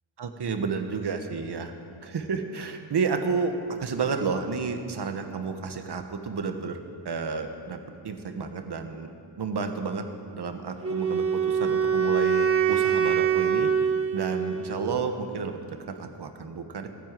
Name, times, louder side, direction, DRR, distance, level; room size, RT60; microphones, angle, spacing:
voice 1, 0.2-1.7 2.0-6.8 7.0-9.1 9.4-10.0 10.3-13.7 14.1-16.9, right 5 dB, 65° right, 6 dB, 1.4 m, -31 dB
Wind instrument woodwind instrument, 10.8-14.9, right 7 dB, 30° right, 1.3 m, -24 dB
17.5 x 10.5 x 7.6 m, 2.4 s
wide cardioid pair, 110°, 44 cm